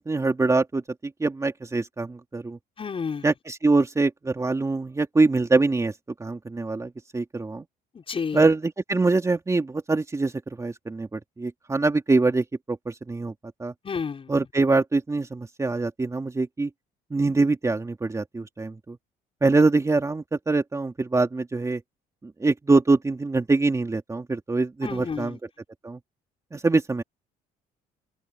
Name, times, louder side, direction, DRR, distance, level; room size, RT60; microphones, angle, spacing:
voice 1, 0.0-2.6 3.2-5.9 6.2-7.6 8.3-10.3 10.6-13.3 13.6-13.7 14.3-16.7 17.1-19.0 19.4-21.8 22.2-25.4 25.8-26.0 26.5-27.0, right 3 dB, 20° right, 2.9 m, -24 dB
voice 2, 2.8-3.3 7.9-8.5 13.8-14.3 24.8-25.4, left 5 dB, 35° left, 5.9 m, -31 dB
open air
cardioid pair, 110°, 17 cm